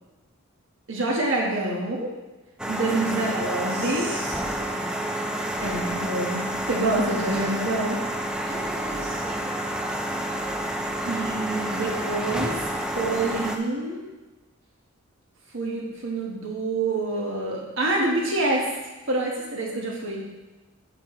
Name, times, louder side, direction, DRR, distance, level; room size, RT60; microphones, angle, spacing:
voice 1, 0.9-2.1 2.7-4.1 5.6-8.0 11.0-14.0 15.5-18.6 19.1-20.2, right 2 dB, 60° right, -2 dB, 1.7 m, -27 dB
sound 1, 2.6-13.6, right 1 dB, 5° right, 0.4 m, -29 dB
voice 2, 2.9-5.3 7.1-7.6 8.4-9.4 11.7-12.2, right 1 dB, 25° right, -9 dB, 2.3 m, -39 dB
7.8 x 7.7 x 3.2 m, 1.1 s
head